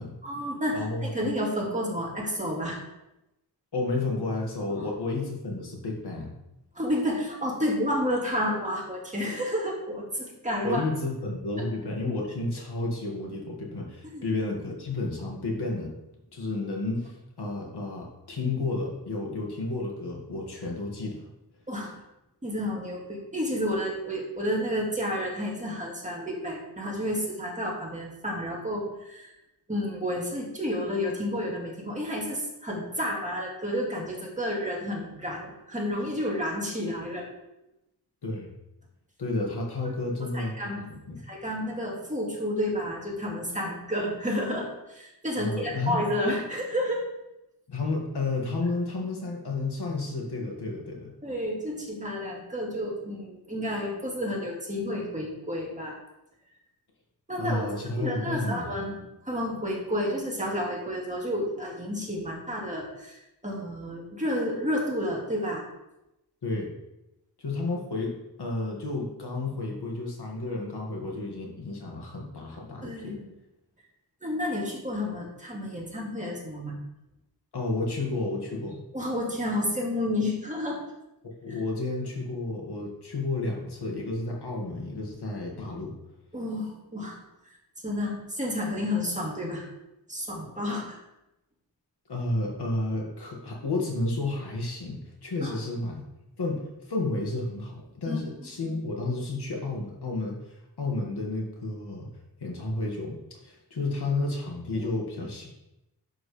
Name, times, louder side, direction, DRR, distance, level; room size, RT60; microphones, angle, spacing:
voice 1, 0.2-2.8 4.7-4.8 6.7-10.9 11.6-11.7 14.0-14.3 21.7-21.9 22.4-29.3 29.7-37.3 39.8-39.9 40.3-40.8 41.2-47.0 51.2-56.0 57.3-57.7 58.0-59.0 59.2-65.6 72.8-73.3 74.2-76.8 78.9-80.8 81.5-81.6 86.3-87.2 87.5-87.6 87.8-89.7 90.1-91.0 95.4-95.6 98.1-98.2 98.6-98.8 104.7-104.9, equal, 20° right, -2 dB, 2.2 m, -31 dB
voice 2, 0.7-1.0 3.7-6.3 10.6-15.9 16.3-21.2 38.2-38.5 39.2-41.2 45.4-46.1 47.7-51.1 57.4-58.7 66.4-66.7 67.4-73.2 77.5-78.8 81.4-86.0 92.1-96.0 96.4-102.1 102.4-103.2 103.4-105.5, left 2 dB, 70° left, -1 dB, 2.2 m, -31 dB
11.0 x 7.1 x 3.4 m, 0.91 s
wide cardioid pair, 125°, 41 cm